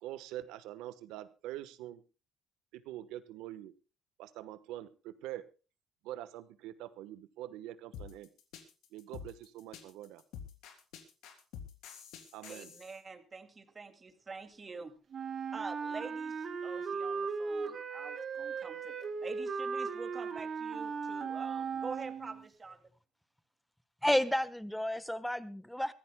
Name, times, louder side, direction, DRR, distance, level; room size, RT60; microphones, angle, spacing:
voice 1, 0.0-2.0 2.7-3.7 4.2-5.4 6.0-8.3 8.9-10.2 12.3-12.7, right 13 dB, 85° right, 1.1 m, -44 dB
sound 1, 7.9-13.0, left 8 dB, 80° left, 3.2 m, -48 dB
voice 2, 12.4-15.0 15.5-19.0 19.2-22.9, right 4 dB, 30° right, 2.3 m, -46 dB
Wind instrument woodwind instrument, 15.1-22.5, right 5 dB, 45° right, 1.9 m, -37 dB
voice 3, 24.0-25.9, equal, 5° left, 1.2 m, -31 dB
24.5 x 15.0 x 2.2 m
cardioid pair, 95°, 0 cm